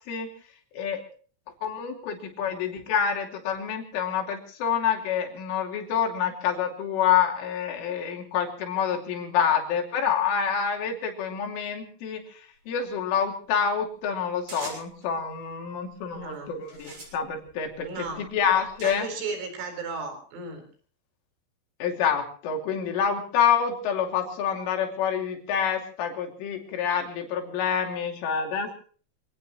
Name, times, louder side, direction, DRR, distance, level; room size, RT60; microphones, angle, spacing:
voice 1, 1.6-17.9 18.3-19.1 21.8-28.7, left 7 dB, 70° left, 3 dB, 5.3 m, -27 dB
sound 1, 14.5-15.1 15.9-16.2 16.6-18.9, right 2 dB, 40° right, 7.8 m, -44 dB
voice 2, 16.0-16.5 17.8-18.2 18.8-20.6, right 4 dB, 70° right, 6 dB, 6.6 m, -35 dB
26.5 x 18.0 x 3.0 m, 0.42 s
omnidirectional pair, 5.9 m